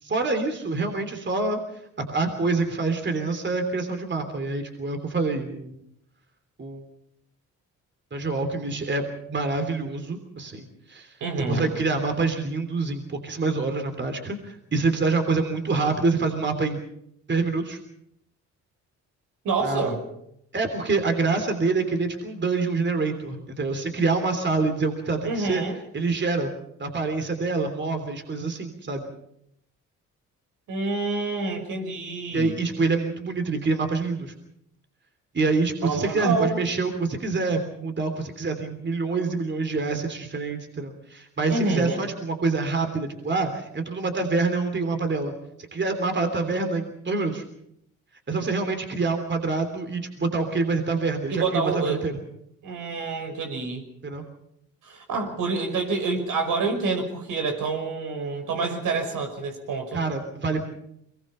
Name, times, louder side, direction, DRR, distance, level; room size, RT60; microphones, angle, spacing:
voice 1, 0.0-1.6 2.1-5.8 6.6-6.9 8.1-16.8 17.3-17.8 19.6-19.9 20.5-25.6 25.9-26.5 26.8-29.1 32.3-34.3 35.3-45.3 45.7-47.4 48.3-52.1 54.0-54.3 59.9-60.7, right 3 dB, 35° right, 6 dB, 3.3 m, -26 dB
voice 2, 11.2-11.7 19.4-20.0 25.2-25.8 30.7-32.5 35.8-36.6 41.5-42.0 51.3-52.0 52.6-53.8 54.8-60.0, right 3 dB, 80° right, 4 dB, 5.6 m, -27 dB
23.5 x 20.5 x 5.7 m, 0.76 s
cardioid pair, 70°, 32 cm